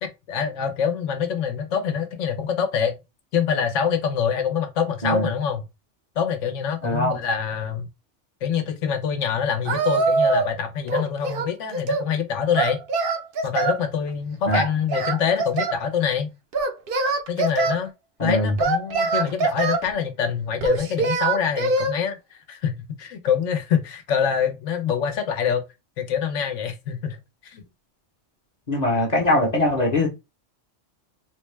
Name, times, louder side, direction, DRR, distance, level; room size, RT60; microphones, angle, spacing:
voice 1, 0.0-3.0 3.3-5.6 6.2-7.9 8.4-12.8 13.4-16.3 17.3-17.9 18.2-25.6 26.0-27.2 27.4-27.6, left 7 dB, 85° left, 1.1 m, -25 dB
voice 2, 6.8-7.2 14.5-14.6 18.2-18.6 28.7-30.1, left 1 dB, 40° left, 0.8 m, -22 dB
Singing, 9.7-10.6 10.9-12.1 12.5-13.8 14.5-15.8 16.5-17.8 18.6-19.9 20.6-21.9, right 3 dB, 55° right, 0.7 m, -23 dB
3.6 x 2.2 x 3.2 m
omnidirectional pair, 1.2 m